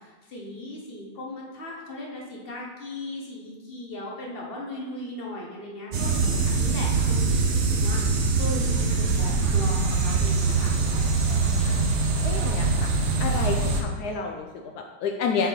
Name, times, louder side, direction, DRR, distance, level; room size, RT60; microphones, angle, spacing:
voice 1, 0.0-10.8, left 1 dB, 45° left, -2 dB, 0.7 m, -37 dB
sound 1, 5.9-13.8, right 4 dB, 70° right, 0.6 m, -23 dB
voice 2, 11.6-12.0 12.2-12.9 13.2-15.5, left 5 dB, 90° left, 3 dB, 0.8 m, -30 dB
6.8 x 3.7 x 4.4 m, 1.3 s
omnidirectional pair, 2.2 m